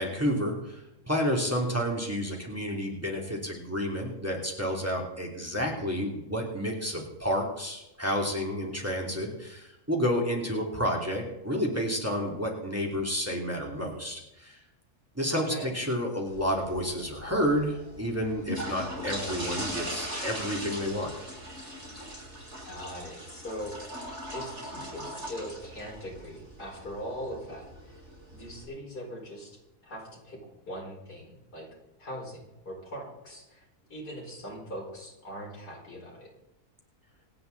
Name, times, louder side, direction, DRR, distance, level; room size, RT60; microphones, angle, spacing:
voice 1, 0.0-14.6 15.1-21.1, equal, 10° right, -1 dB, 2.9 m, -30 dB
voice 2, 15.3-15.7 22.7-24.0 24.3-28.0 28.3-30.4 30.7-31.7 32.0-33.7 33.9-36.3, equal, 85° left, -2 dB, 5.6 m, -41 dB
sound 1, 16.3-28.6, equal, 45° right, 7.8 m, -40 dB
27.0 x 9.5 x 4.1 m, 0.91 s
omnidirectional pair, 1.7 m